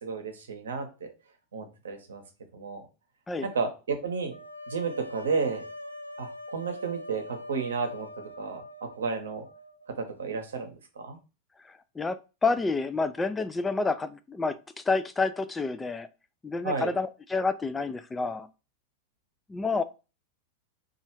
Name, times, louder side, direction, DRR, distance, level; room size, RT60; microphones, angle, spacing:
voice 1, 0.0-1.1 1.5-2.2 2.5-2.9 3.4-4.4 4.7-5.6 6.2-9.4 10.0-11.2 16.6-16.9, right 5 dB, 65° right, 5 dB, 0.8 m, -32 dB
sound 1, 4.3-10.2, left 2 dB, 90° left, 0.4 m, -43 dB
voice 2, 12.4-16.1 16.4-18.5 19.5-19.8, left 3 dB, 10° left, 11 dB, 0.3 m, -29 dB
3.1 x 2.4 x 4.3 m, 0.31 s
figure-of-eight pair, 90°, 0 cm